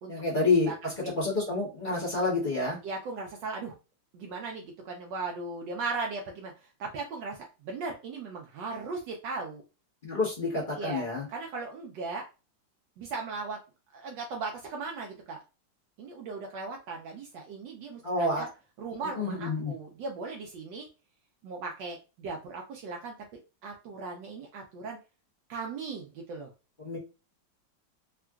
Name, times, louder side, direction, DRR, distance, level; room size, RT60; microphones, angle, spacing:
voice 1, 0.1-2.8 10.0-11.3 18.0-18.5 19.1-19.7 26.8-27.0, left 3 dB, 35° left, -6 dB, 0.9 m, -28 dB
voice 2, 2.8-3.7 4.1-9.6 10.7-12.2 13.0-13.6 13.9-15.4 16.0-18.5 18.8-20.9 21.4-25.0 25.5-26.5, right 4 dB, 75° right, 1 dB, 1.2 m, -38 dB
3.6 x 2.4 x 2.2 m, 0.31 s
omnidirectional pair, 2.1 m